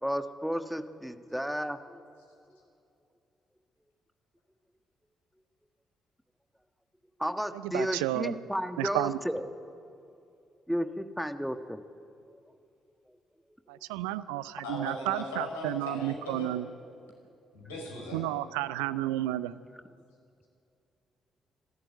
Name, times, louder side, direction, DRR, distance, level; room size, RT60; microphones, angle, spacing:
voice 1, 0.0-2.0 7.2-9.4 10.7-11.8, equal, ahead, 8 dB, 1.5 m, -33 dB
voice 2, 7.5-8.3 8.8-9.2 13.7-16.7 18.1-19.5, right 15 dB, 75° right, 16 dB, 0.5 m, -32 dB
voice 3, 14.6-16.5 17.5-18.3, left 2 dB, 80° left, 0 dB, 5.4 m, -38 dB
26.0 x 13.5 x 9.2 m, 2.6 s
figure-of-eight pair, 40°, 0 cm